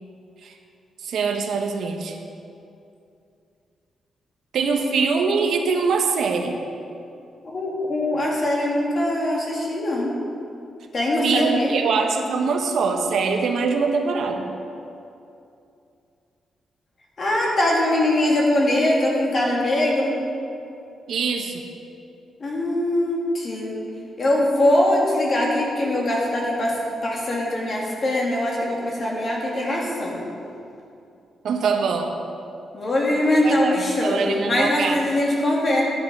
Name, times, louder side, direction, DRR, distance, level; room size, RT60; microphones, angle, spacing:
voice 1, 1.0-2.2 4.5-6.6 11.2-14.5 21.1-21.6 31.4-32.2 33.4-35.0, right 5 dB, 70° right, 3 dB, 1.0 m, -23 dB
voice 2, 7.4-10.1 10.9-11.7 17.2-20.1 22.4-23.8 24.2-26.7 27.0-30.2 32.7-35.8, left 1 dB, 35° left, -3 dB, 2.2 m, -22 dB
11.0 x 8.4 x 5.3 m, 2.6 s
wide cardioid pair, 160°, 0 cm